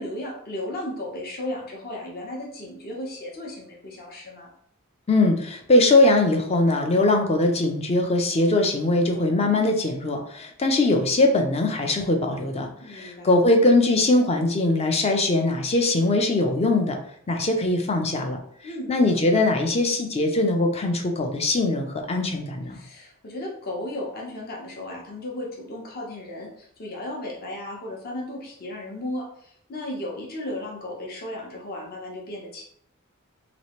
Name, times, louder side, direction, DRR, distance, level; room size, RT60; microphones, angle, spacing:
voice 1, 0.0-4.5 12.8-13.4 18.6-19.2 22.7-32.6, left 1 dB, 45° left, -2 dB, 0.8 m, -35 dB
voice 2, 5.1-12.7 12.9-17.0 17.3-18.4 18.9-22.8, left 2 dB, 30° left, 3 dB, 0.5 m, -21 dB
3.1 x 3.0 x 3.0 m, 0.65 s
head